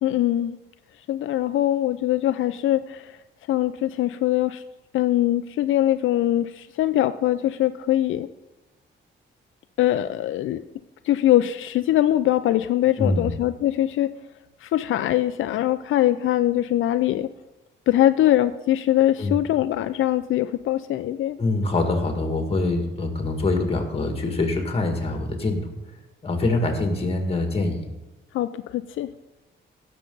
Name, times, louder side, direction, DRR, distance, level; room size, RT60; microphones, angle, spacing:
voice 1, 0.0-0.6 1.1-3.2 3.5-4.6 4.9-8.3 9.8-10.6 11.0-14.1 14.6-17.3 17.9-21.4 28.3-29.1, left 13 dB, 80° left, 10 dB, 0.4 m, -22 dB
voice 2, 13.0-13.3 19.2-19.3 21.4-25.7 26.2-27.9, left 2 dB, 30° left, 4 dB, 1.8 m, -24 dB
17.0 x 6.6 x 3.9 m, 1.1 s
cardioid pair, 135°, 20 cm